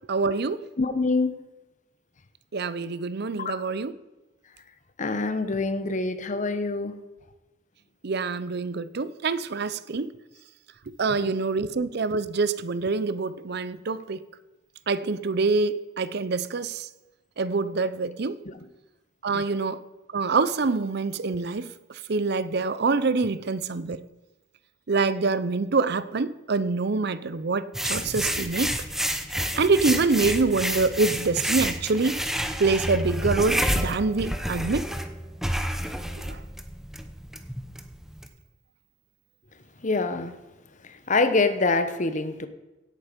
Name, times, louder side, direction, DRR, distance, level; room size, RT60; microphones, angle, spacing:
voice 1, 0.1-0.6 2.5-3.9 8.0-10.1 11.0-14.2 14.9-16.9 17.4-18.4 19.2-19.8 20.1-21.7 22.1-24.0 24.9-28.7 29.6-32.2 32.6-34.9 36.3-36.4, right 4 dB, 60° right, 0.6 m, -25 dB
voice 2, 0.8-1.4 3.4-3.5 5.0-6.9 11.2-11.3 18.4-18.5 19.3-19.4 39.8-40.3 41.1-42.5, left 3 dB, 40° left, 1.0 m, -25 dB
sound 1, 27.7-38.3, equal, ahead, 0.9 m, -29 dB
17.0 x 8.8 x 5.2 m
head